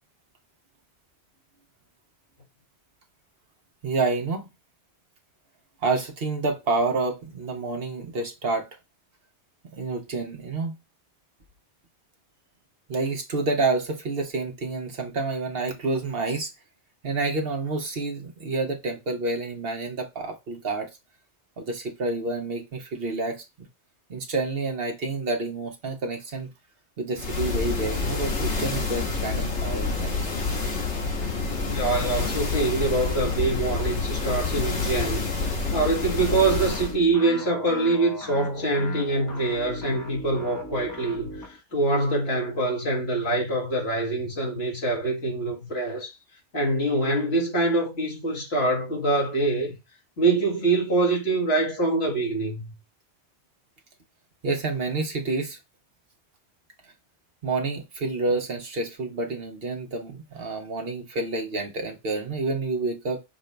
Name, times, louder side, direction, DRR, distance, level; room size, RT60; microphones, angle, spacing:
voice 1, 3.8-4.5 5.8-8.7 9.8-10.7 12.9-16.5 17.0-20.9 21.6-23.7 24.1-26.5 27.0-30.3 54.4-55.6 57.4-63.2, right 3 dB, 60° right, 1.3 m, -28 dB
sound 1, 27.2-37.0, left 3 dB, 90° left, 1.5 m, -28 dB
voice 2, 31.6-35.3 35.7-46.1 46.5-49.7 50.2-52.7, right 2 dB, 65° left, 2.2 m, -24 dB
sound 2, 36.3-41.6, left 1 dB, 20° left, 1.0 m, -39 dB
6.1 x 2.7 x 3.2 m
omnidirectional pair, 1.1 m